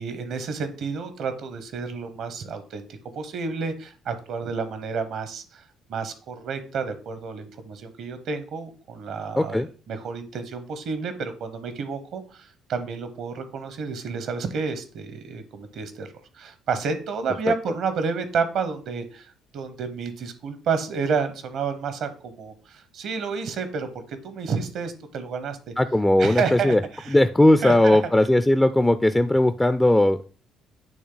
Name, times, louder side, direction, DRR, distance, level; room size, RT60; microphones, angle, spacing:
voice 1, 0.0-2.9 3.1-5.6 5.9-16.1 16.3-25.6 26.2-27.1 27.6-28.0, right 5 dB, 70° right, 10 dB, 1.0 m, -30 dB
voice 2, 9.4-9.7 17.5-17.6 25.8-26.8 27.1-30.2, left 1 dB, 10° left, 10 dB, 0.4 m, -18 dB
8.7 x 3.2 x 3.9 m, 0.37 s
supercardioid pair, 65°, 0 cm